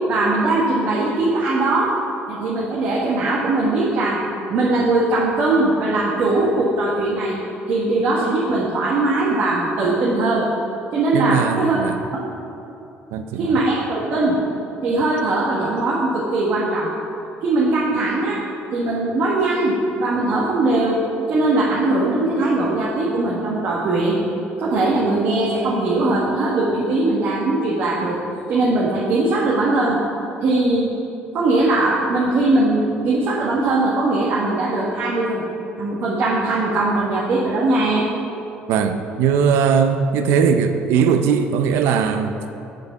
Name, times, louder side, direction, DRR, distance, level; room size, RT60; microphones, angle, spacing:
voice 1, 0.1-1.9 2.3-4.2 4.5-7.4 7.7-10.5 10.9-11.8 12.1-12.2 13.4-14.4 14.8-16.9 17.4-18.4 18.7-21.0 21.3-24.2 24.6-28.2 28.5-30.0 30.4-30.9 31.3-35.4 35.8-38.1, right 2 dB, 60° right, -5 dB, 1.2 m, -20 dB
voice 2, 11.1-12.0 13.1-13.6 38.7-42.4, right 6 dB, 85° right, 7 dB, 0.5 m, -19 dB
6.3 x 5.2 x 6.5 m, 2.8 s
cardioid pair, 110°, 4 cm